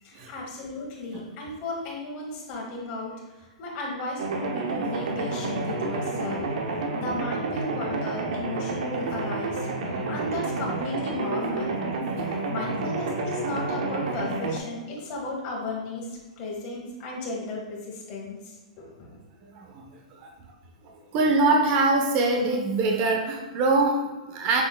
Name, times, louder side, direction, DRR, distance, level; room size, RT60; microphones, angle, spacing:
voice 1, 0.0-6.5 6.9-11.8 12.2-19.2 21.2-21.3, left 2 dB, 35° left, -3 dB, 1.5 m, -35 dB
sound 1, 4.2-14.6, right 3 dB, 70° right, 0.7 m, -30 dB
voice 2, 19.4-19.8 21.1-24.6, right 3 dB, 40° right, 1 dB, 0.8 m, -23 dB
6.2 x 3.9 x 2.2 m, 1.2 s
hypercardioid pair, 135°, 4 cm